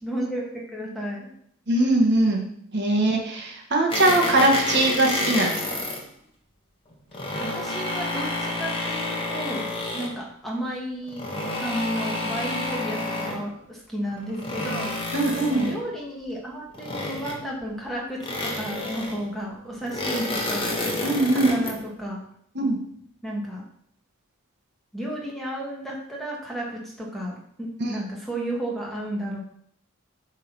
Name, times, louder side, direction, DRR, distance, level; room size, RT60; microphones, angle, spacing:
voice 1, 0.0-1.3 7.4-11.2 11.6-14.9 15.4-20.7 21.3-22.2 23.2-23.6 24.9-29.4, equal, ahead, -3 dB, 1.6 m, -33 dB
voice 2, 1.7-2.4 2.7-5.5 15.1-15.6 21.0-21.6 22.5-22.8 27.8-27.9, right 2 dB, 55° right, 1 dB, 1.3 m, -21 dB
sound 1, 3.9-6.0 6.9-10.2 11.1-13.5 14.1-15.9 16.7-17.6 18.2-19.3 19.8-21.8, left 2 dB, 25° left, 1.3 m, -29 dB
8.4 x 3.7 x 6.0 m, 0.67 s
head